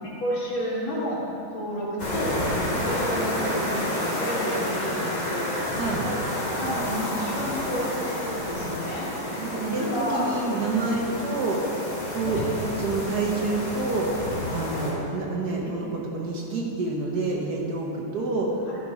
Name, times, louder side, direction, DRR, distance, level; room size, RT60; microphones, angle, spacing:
voice 1, 0.2-1.2 1.5-5.5 6.6-9.1 9.7-10.3 12.3-12.7 15.6-15.7 18.7-18.8, equal, 65° left, -5 dB, 2.5 m, -31 dB
sound 1, 2.0-14.9, left 1 dB, 25° left, 1.1 m, -30 dB
sound 2, 4.6-8.9, right 4 dB, 80° right, 0.7 m, -44 dB
voice 2, 5.7-6.0 9.4-11.6 12.1-12.4 12.8-14.1 14.5-18.6, right 3 dB, 55° right, -2 dB, 1.3 m, -28 dB
10.5 x 5.8 x 5.0 m, 2.8 s
omnidirectional pair, 2.4 m